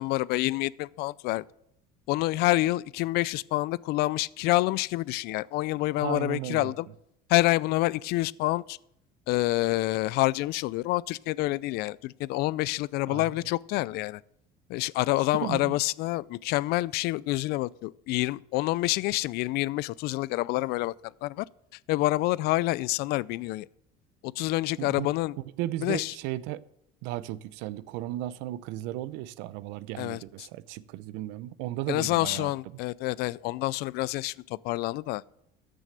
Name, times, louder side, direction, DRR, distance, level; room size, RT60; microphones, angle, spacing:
voice 1, 0.0-1.4 2.1-6.9 7.3-8.8 9.3-14.2 14.7-20.9 21.2-21.5 21.9-23.7 24.2-25.4 25.8-26.1 30.0-30.5 31.9-35.2, left 18 dB, 60° left, 0.4 m, -27 dB
voice 2, 6.0-6.7 13.1-13.2 15.4-15.8 24.8-25.1 25.4-26.6 27.0-32.5, right 15 dB, 80° right, 0.6 m, -35 dB
14.0 x 6.3 x 6.7 m
cardioid pair, 145°, 19 cm